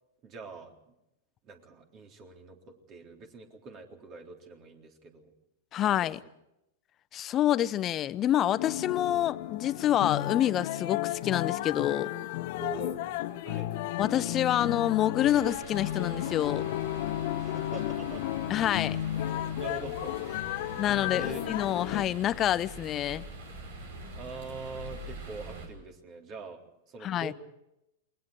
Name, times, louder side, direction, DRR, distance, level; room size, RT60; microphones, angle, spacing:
voice 1, 0.2-0.9 1.4-5.3 5.8-6.1 12.6-13.0 13.5-13.7 17.4-18.3 19.6-20.4 21.1-21.4 24.1-26.6 26.9-27.3, right 3 dB, 35° right, 3.7 m, -44 dB
voice 2, 5.7-6.2 7.1-12.1 14.0-16.7 18.5-19.0 20.8-23.2 27.0-27.3, left 11 dB, 30° left, 0.8 m, -27 dB
sound 1, 8.6-22.0, left 13 dB, 55° left, 1.3 m, -33 dB
sound 2, 15.2-25.7, right 1 dB, 70° right, 5.4 m, -44 dB
28.5 x 21.5 x 4.9 m
hypercardioid pair, 100°, 0 cm